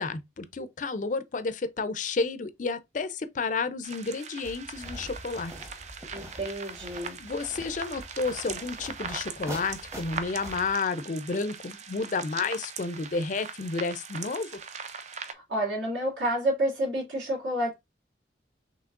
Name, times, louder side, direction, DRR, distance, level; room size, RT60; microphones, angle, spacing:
voice 1, 0.0-5.5 7.2-14.5, left 4 dB, 45° left, 0.4 m, -31 dB
sound 1, 3.8-15.3, right 6 dB, 40° right, 0.5 m, -41 dB
sound 2, 4.4-10.7, right 1 dB, 15° right, 0.9 m, -44 dB
voice 2, 6.1-7.2 15.3-17.7, right 1 dB, 75° right, 3.1 m, -29 dB
5.7 x 3.2 x 2.4 m
head